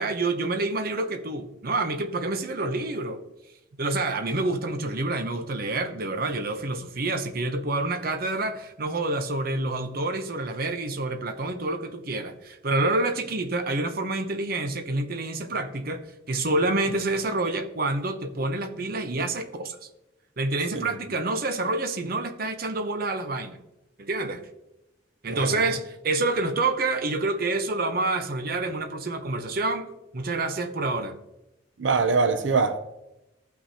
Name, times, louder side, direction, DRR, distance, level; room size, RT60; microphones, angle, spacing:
voice 1, 0.0-3.2 3.8-16.0 16.3-19.8 20.4-23.6 24.0-24.5 25.2-31.2, right 2 dB, 55° right, 0.8 m, -28 dB
voice 2, 31.8-32.8, right 4 dB, 85° right, 0.6 m, -23 dB
14.5 x 6.0 x 2.8 m
head